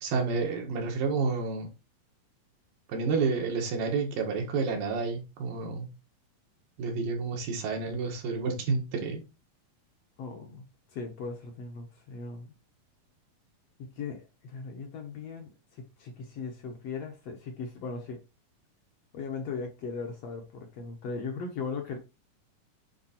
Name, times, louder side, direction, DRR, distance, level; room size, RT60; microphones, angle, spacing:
voice 1, 0.0-1.7 2.9-5.9 6.8-9.2, right 4 dB, 85° right, 3.5 m, -30 dB
voice 2, 10.2-12.5 13.8-18.2 19.1-22.0, left 4 dB, 60° left, 1.8 m, -38 dB
8.8 x 3.7 x 4.3 m
omnidirectional pair, 3.8 m